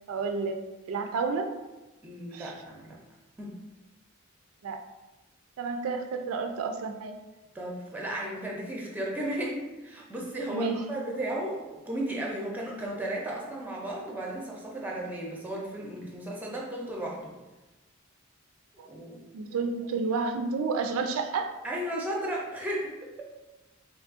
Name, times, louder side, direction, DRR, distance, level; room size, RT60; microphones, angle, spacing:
voice 1, 0.1-1.5 2.3-2.5 4.6-4.8 5.6-7.2 10.5-10.8 18.8-18.9 19.3-21.5, right 4 dB, 80° right, 6 dB, 0.3 m, -30 dB
voice 2, 2.0-3.0 3.4-3.5 7.5-17.3 18.9-19.2 21.6-23.3, right 1 dB, 10° right, -3 dB, 0.5 m, -34 dB
3.1 x 2.4 x 3.5 m, 1.1 s
head